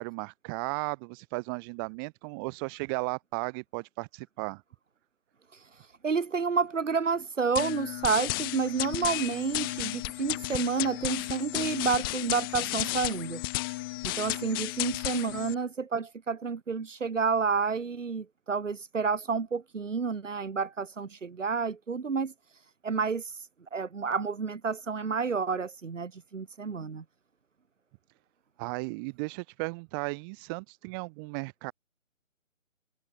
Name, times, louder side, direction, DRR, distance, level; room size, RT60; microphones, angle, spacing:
voice 1, 0.0-4.6 28.6-31.7, right 32 dB, 15° right, 4.5 m, -35 dB
voice 2, 5.5-13.4 14.0-27.0, right 5 dB, 65° right, 5.2 m, -30 dB
sound 1, 7.5-15.5, left 21 dB, 15° left, 3.0 m, -33 dB
hypercardioid pair, 165°, 40 cm